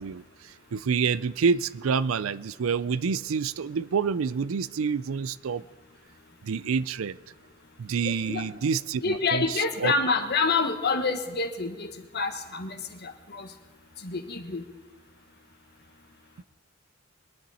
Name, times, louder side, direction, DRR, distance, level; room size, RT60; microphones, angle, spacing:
voice 1, 0.0-5.6 6.4-7.2 7.8-9.9, right 5 dB, 80° right, 17 dB, 0.4 m, -28 dB
voice 2, 8.0-8.4 9.0-13.5 14.0-14.6, left 4 dB, 50° left, 6 dB, 1.4 m, -28 dB
23.0 x 10.5 x 4.2 m, 1.2 s
head